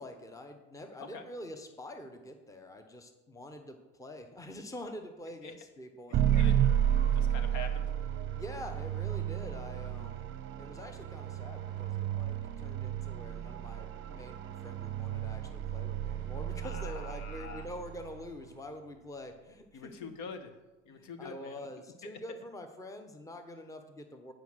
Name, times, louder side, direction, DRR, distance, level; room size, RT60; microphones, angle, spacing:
voice 1, 0.0-6.5 8.3-10.3 10.6-19.9 20.9-24.3, left 1 dB, 10° left, 6 dB, 1.0 m, -46 dB
sound 1, 6.1-18.3, right 10 dB, 35° right, 0.7 m, -32 dB
voice 2, 7.1-7.9 16.6-17.7 19.7-20.5 20.9-21.7 22.0-22.1, left 6 dB, 60° left, 8 dB, 1.2 m, -45 dB
9.4 x 5.0 x 6.3 m, 1.1 s
supercardioid pair, 100°, 33 cm